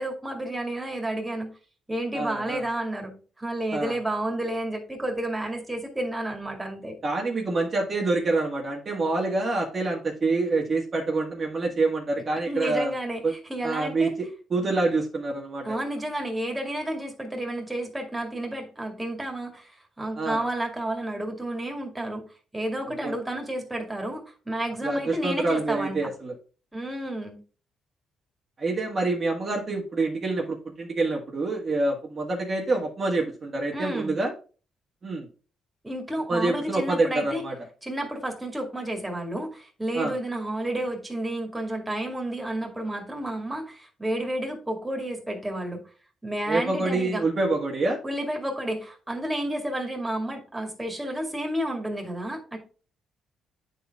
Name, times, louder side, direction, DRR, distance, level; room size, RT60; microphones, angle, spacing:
voice 1, 0.0-1.5 1.9-7.0 12.5-14.1 15.6-22.2 22.5-26.1 26.7-27.4 33.7-34.2 35.8-37.4 37.8-45.8 46.2-47.2 48.0-52.6, right 1 dB, 10° right, 2 dB, 2.2 m, -31 dB
voice 2, 2.1-2.6 3.7-4.0 7.0-12.9 13.2-13.3 13.6-15.8 20.2-20.4 23.0-23.1 24.8-26.3 28.6-34.3 35.0-35.3 36.3-37.5 39.9-40.1 46.5-48.0, right 3 dB, 40° right, -1 dB, 1.6 m, -26 dB
9.1 x 4.2 x 3.6 m, 0.36 s
cardioid pair, 90°, 0 cm